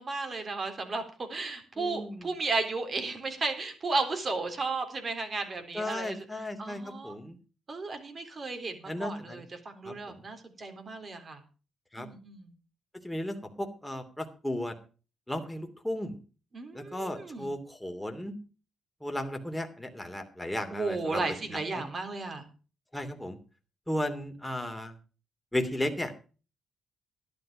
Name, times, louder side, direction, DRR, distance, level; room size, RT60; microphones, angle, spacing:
voice 1, 0.0-7.1 7.7-9.4 9.7-11.4 11.9-12.5 16.5-17.5 20.7-22.4, right 3 dB, 40° right, 6 dB, 3.9 m, -34 dB
voice 2, 1.8-2.3 5.7-7.4 8.9-9.4 9.8-10.2 11.9-12.1 13.0-14.7 15.3-16.1 16.7-18.4 19.0-21.2 21.5-21.9 22.9-23.4 23.9-24.9 25.5-26.1, left 1 dB, 5° left, 5 dB, 2.8 m, -35 dB
12.0 x 11.5 x 5.1 m, 0.36 s
cardioid pair, 90°, 0 cm